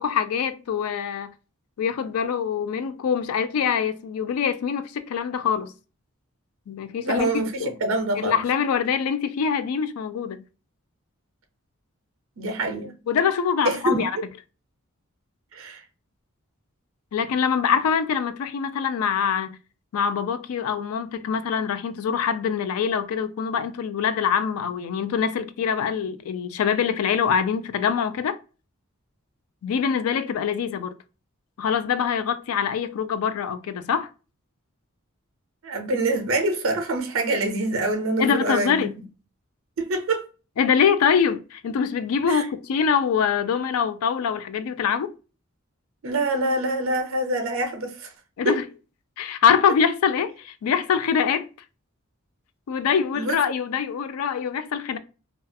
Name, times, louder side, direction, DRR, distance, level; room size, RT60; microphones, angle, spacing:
voice 1, 0.0-1.3 1.8-5.7 6.7-7.7 8.2-10.4 13.1-14.1 17.1-19.6 19.9-28.4 29.6-31.0 31.6-34.1 38.2-38.9 40.6-45.1 48.4-48.7 49.2-51.5 52.7-55.0, left 7 dB, 90° left, 0.3 m, -24 dB
voice 2, 7.0-8.4 12.4-12.9 13.6-14.2 15.5-15.8 35.6-38.9 39.8-40.3 42.3-42.5 46.0-48.1 48.4-48.6 53.2-53.3, right 2 dB, 65° right, 0.5 m, -25 dB
2.3 x 2.3 x 2.5 m
head